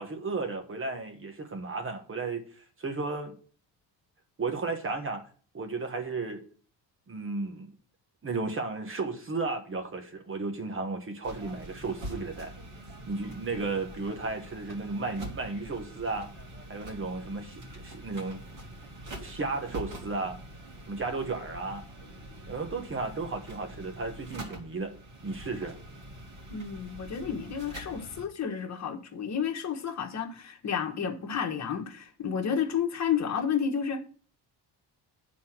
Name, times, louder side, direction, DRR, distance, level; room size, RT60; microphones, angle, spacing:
voice 1, 0.0-3.3 4.4-5.2 5.5-6.4 7.1-7.7 8.2-12.5 13.1-16.3 16.7-18.4 19.2-20.4 20.9-21.9 22.5-24.9 25.2-25.8, right 3 dB, 30° right, 1.2 m, -34 dB
sound 1, 11.2-28.2, right 1 dB, 50° right, 2.4 m, -45 dB
voice 2, 26.5-34.0, left 7 dB, 40° left, 1.4 m, -31 dB
9.5 x 4.2 x 6.0 m
cardioid pair, 150°, 41 cm